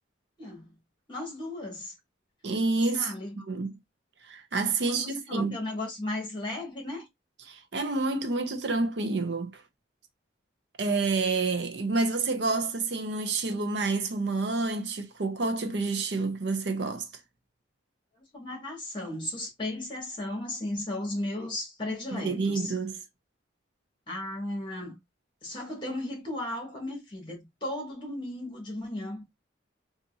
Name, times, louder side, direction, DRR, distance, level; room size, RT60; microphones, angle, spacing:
voice 1, 0.4-0.7 1.1-1.9 2.9-3.4 4.9-7.1 18.3-22.7 24.1-25.0 25.4-29.2, left 1 dB, 25° left, 1.8 m, -35 dB
voice 2, 2.4-3.1 3.5-3.7 4.2-5.6 7.5-9.6 10.8-17.1 22.1-23.0, right 3 dB, 60° right, 0.7 m, -28 dB
4.0 x 2.5 x 2.6 m
head